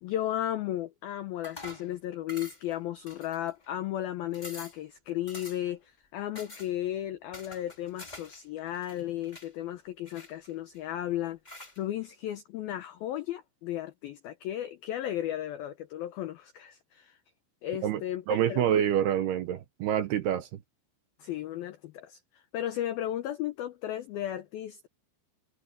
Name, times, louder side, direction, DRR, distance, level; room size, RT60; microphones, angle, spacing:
voice 1, 0.0-17.2 17.6-18.7 21.2-24.9, left 12 dB, 85° left, 2.1 m, -35 dB
sound 1, 1.4-1.9 2.3-2.7 3.1-3.7 4.0-4.1 4.3-4.8 5.3-5.7 6.3-6.7 7.3-8.4 8.7-9.5 10.1-10.8 11.4-11.8, left 2 dB, 50° left, 0.5 m, -46 dB
voice 2, 18.3-20.5, right 10 dB, 70° right, 2.6 m, -27 dB
omnidirectional pair, 5.5 m